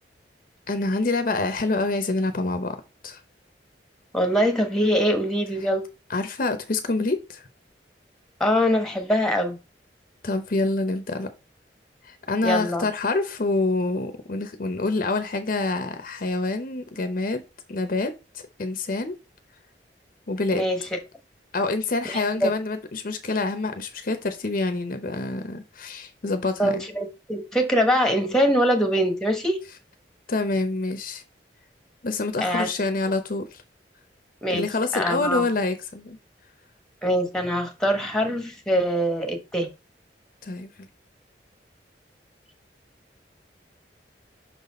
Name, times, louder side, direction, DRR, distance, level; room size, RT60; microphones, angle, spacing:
voice 1, 0.7-2.8 3.0-3.2 6.1-7.4 10.2-11.3 12.0-17.4 17.7-19.1 20.3-20.6 21.5-26.8 30.3-31.2 32.0-33.6 34.5-36.2 40.4-40.7, left 3 dB, 50° left, 0.7 m, -26 dB
voice 2, 4.1-5.8 8.4-9.6 12.4-12.9 20.5-20.8 22.1-22.5 26.6-29.6 32.4-32.7 34.4-34.6 34.9-35.5 37.0-39.7, equal, 5° left, 1.2 m, -23 dB
5.9 x 4.1 x 4.1 m
head